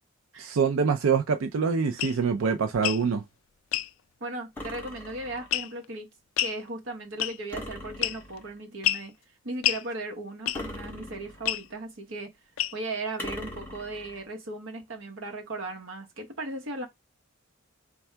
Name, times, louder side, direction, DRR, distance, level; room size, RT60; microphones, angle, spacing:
voice 1, 0.4-3.2, right 5 dB, 85° right, 0.4 m, -25 dB
sound 1, 2.0-2.2 2.7-3.0 3.7-3.9 5.5-5.8 6.4-6.6 7.2-7.5 8.0-8.4 8.8-9.1 9.6-9.8 10.5-10.8 11.4-11.6 12.6-12.9, left 14 dB, 75° left, 0.3 m, -28 dB
voice 2, 4.2-6.1 6.4-9.1 9.4-12.3 12.7-16.9, right 2 dB, 70° right, 1.0 m, -37 dB
sound 2, 4.6-5.6 7.5-8.6 10.5-11.7 13.2-14.3, left 1 dB, 10° left, 1.0 m, -40 dB
3.5 x 2.3 x 4.4 m
head